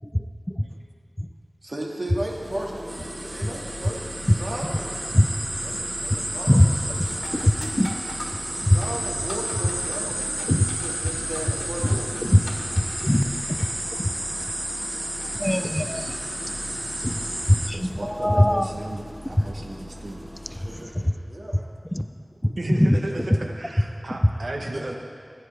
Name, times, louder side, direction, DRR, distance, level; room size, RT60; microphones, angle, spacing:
voice 1, 1.6-5.0 5.6-7.0 8.6-12.7 20.5-21.7 23.3-23.5 24.7-24.8, right 1 dB, 60° right, -2 dB, 1.6 m, -35 dB
Engine starting, 2.3-20.8, equal, 10° right, 1.7 m, -41 dB
sound 1, 2.9-17.7, right 1 dB, 35° right, 0.7 m, -32 dB
sound 2, 4.5-4.8 5.3-5.7 6.0-19.5 22.1-22.2 23.0-23.2, left 1 dB, 70° left, 1.5 m, -44 dB
voice 2, 7.3-7.9 8.6-8.8 10.5-10.7 11.9-12.4 12.7-13.7 14.0-14.1 15.4-16.2 17.0-17.2 17.5-18.7 19.4-19.5 21.0-21.1 21.9-22.1 22.4-22.5 22.8-23.0, equal, 10° left, 10 dB, 0.4 m, -21 dB
voice 3, 17.7-20.2 22.4-24.9, right 2 dB, 85° right, 2 dB, 0.9 m, -34 dB
15.0 x 9.5 x 3.3 m, 2.4 s
wide cardioid pair, 50°, 0 cm